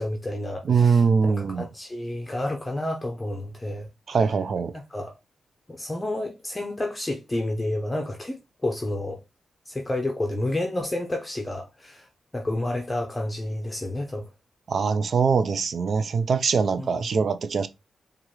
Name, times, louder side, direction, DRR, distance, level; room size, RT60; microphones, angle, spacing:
voice 1, 0.0-3.9 4.7-5.1 5.7-9.2 9.7-12.1 12.3-14.3 16.8-17.1, left 1 dB, 20° left, 0.7 m, -30 dB
voice 2, 0.7-1.7 4.1-4.7 14.7-17.7, right 5 dB, 65° right, 0.4 m, -22 dB
4.8 x 2.4 x 3.0 m
cardioid pair, 65°, 0 cm